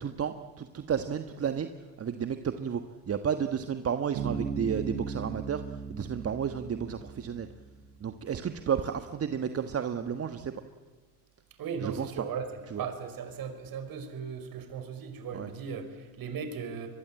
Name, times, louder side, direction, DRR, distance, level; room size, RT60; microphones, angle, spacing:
voice 1, 0.0-1.7 2.0-5.6 5.9-7.5 8.0-10.6 11.8-12.3 12.6-12.9 15.3-15.5, right 7 dB, 30° right, 8 dB, 1.5 m, -32 dB
Bass guitar, 4.2-7.8, right 6 dB, 70° right, 3.6 m, -37 dB
voice 2, 11.6-16.9, right 6 dB, 50° right, 8 dB, 5.1 m, -37 dB
24.5 x 22.0 x 8.8 m, 1.4 s
supercardioid pair, 90°, 45 cm